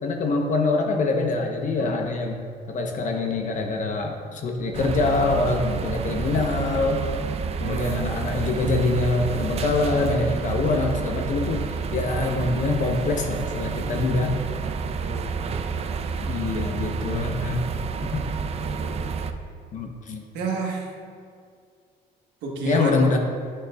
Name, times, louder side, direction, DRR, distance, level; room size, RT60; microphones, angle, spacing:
voice 1, 0.0-2.4 2.7-7.1 7.6-14.4 16.2-17.7 18.0-18.2 19.7-20.2 22.6-23.2, left 3 dB, 50° left, 3 dB, 0.8 m, -24 dB
sound 1, 4.7-19.3, right 5 dB, 40° right, 0.4 m, -29 dB
voice 2, 7.6-8.0 15.0-15.3 18.5-19.0 20.3-20.9 22.4-22.9, right 3 dB, 85° right, 0 dB, 1.3 m, -30 dB
8.8 x 6.4 x 2.3 m, 2.2 s
cardioid pair, 110°, 17 cm